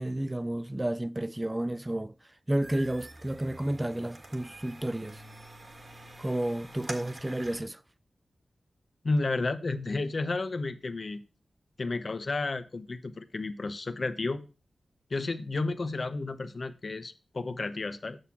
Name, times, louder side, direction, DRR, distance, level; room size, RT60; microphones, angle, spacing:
voice 1, 0.0-2.1 2.5-5.2 6.2-7.8, right 1 dB, 20° right, 0.4 m, -31 dB
sound 1, 2.6-7.6, right 1 dB, 45° right, 1.6 m, -46 dB
voice 2, 9.0-11.2 11.8-14.5 15.1-18.2, left 3 dB, 55° left, 0.9 m, -32 dB
8.0 x 6.0 x 5.7 m
cardioid pair, 55°, 0 cm